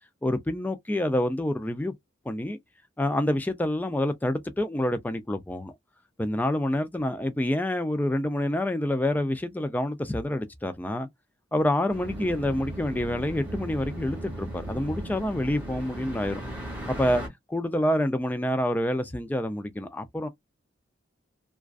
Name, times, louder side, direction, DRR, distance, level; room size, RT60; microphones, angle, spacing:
voice 1, 0.2-1.9 2.3-2.6 3.0-5.7 6.2-11.1 11.5-16.4 16.9-20.3, left 1 dB, 10° left, 0.3 m, -27 dB
sound 1, 11.9-17.3, right 1 dB, 5° right, 0.9 m, -37 dB
2.4 x 2.2 x 2.3 m
head